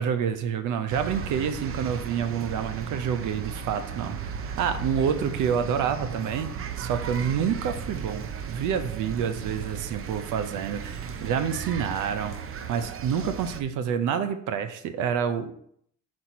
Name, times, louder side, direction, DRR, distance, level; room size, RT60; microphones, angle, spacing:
voice 1, 0.0-15.5, right 7 dB, 85° right, 10 dB, 0.6 m, -28 dB
sound 1, 0.9-13.6, right 7 dB, 50° right, 0.6 m, -35 dB
6.0 x 4.3 x 4.1 m, 0.67 s
cardioid pair, 90°, 30 cm